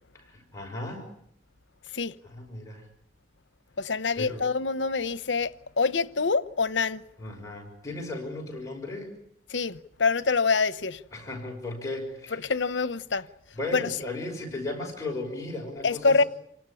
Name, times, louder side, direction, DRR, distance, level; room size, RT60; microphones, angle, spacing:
voice 1, 0.1-1.1 2.2-2.9 4.2-4.4 7.2-9.1 11.1-12.4 13.5-16.3, left 2 dB, 15° left, 6.0 m, -36 dB
voice 2, 3.8-7.0 9.5-11.0 12.4-13.3 13.7-13.8 15.8-16.2, left 4 dB, 85° left, 1.0 m, -25 dB
28.5 x 18.5 x 9.9 m
head